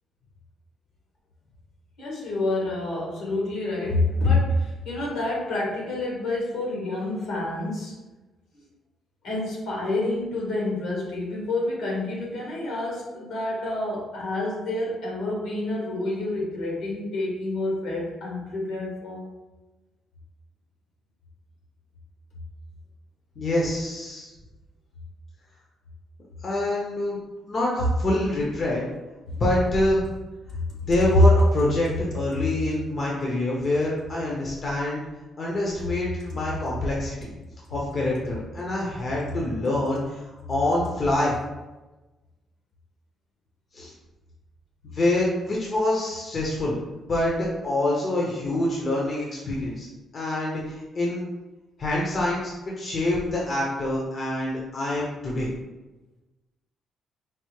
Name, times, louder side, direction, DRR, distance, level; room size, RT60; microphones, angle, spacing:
voice 1, 2.0-8.0 9.2-19.3 30.5-30.9, left 2 dB, 80° left, -3 dB, 1.4 m, -28 dB
voice 2, 23.4-24.3 26.4-27.2 27.5-28.8 29.3-30.1 30.9-35.0 35.4-37.3 37.7-40.2 40.5-41.4 43.7-43.9 44.8-46.8 47.0-49.9 50.1-51.3 51.8-55.5, left 1 dB, 45° left, -4 dB, 0.8 m, -26 dB
4.5 x 2.1 x 3.1 m, 1.1 s
cardioid pair, 90°, 0 cm